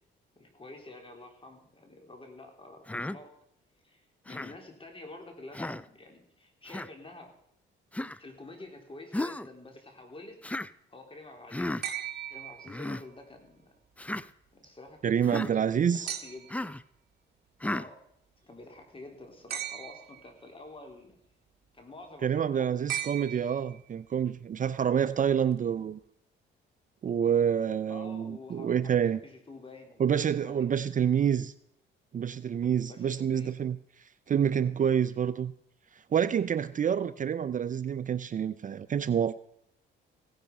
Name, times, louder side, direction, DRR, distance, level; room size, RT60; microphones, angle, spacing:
voice 1, 0.4-3.4 3.8-7.3 8.1-11.8 12.3-13.7 14.5-16.5 17.6-18.0 18.4-21.2 21.7-22.8 27.9-30.7 32.8-33.6, left 2 dB, 25° left, 3 dB, 3.7 m, -48 dB
Human voice, 2.9-3.2 4.3-4.6 5.5-5.8 6.7-6.9 7.9-8.2 9.1-9.5 10.4-10.7 11.5-11.8 12.7-13.0 14.0-14.3 15.2-15.5 16.5-16.8 17.6-17.9, left 1 dB, 5° left, 0.5 m, -34 dB
sound 1, 11.8-13.2 16.1-16.7 19.5-20.3 22.9-23.9 25.5-25.6, right 10 dB, 55° right, 1.5 m, -38 dB
voice 2, 15.0-16.1 22.2-26.0 27.0-29.2 30.0-31.5 32.1-33.8 34.3-35.5 36.1-39.3, right 8 dB, 40° right, 13 dB, 0.5 m, -27 dB
16.5 x 10.5 x 5.4 m, 0.74 s
cardioid pair, 90°, 20 cm